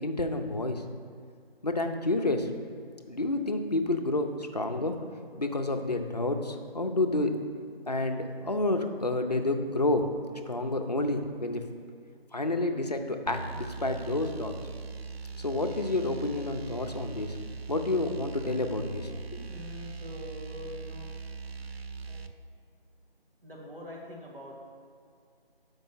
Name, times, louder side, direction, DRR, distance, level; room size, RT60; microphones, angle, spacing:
voice 1, 0.0-0.8 1.6-2.5 3.1-5.0 5.4-7.3 7.9-10.1 10.5-11.6 12.3-14.6 15.4-17.3 17.7-19.4, left 2 dB, 45° left, 5 dB, 0.5 m, -29 dB
sound 1, 13.3-22.3, right 5 dB, 85° right, 0.6 m, -41 dB
voice 2, 19.4-21.1 22.1-22.2 23.4-24.5, left 1 dB, 65° right, -3 dB, 1.8 m, -44 dB
6.2 x 5.3 x 5.4 m, 2.3 s
figure-of-eight pair, 180°, 30 cm